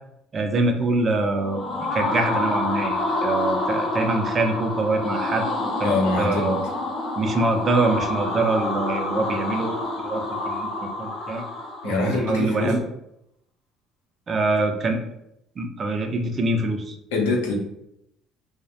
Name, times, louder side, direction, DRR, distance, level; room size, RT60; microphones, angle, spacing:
voice 1, 0.3-6.7 7.2-11.4 11.8-12.8 14.3-15.0 15.6-17.0, right 2 dB, 40° right, 4 dB, 0.4 m, -25 dB
sound 1, 1.3-12.2, left 2 dB, 55° left, 0.7 m, -27 dB
voice 2, 5.8-6.6 11.8-12.7 17.1-17.5, left 3 dB, 90° left, -1 dB, 0.6 m, -24 dB
2.3 x 2.0 x 2.8 m, 0.81 s
supercardioid pair, 80°, 0 cm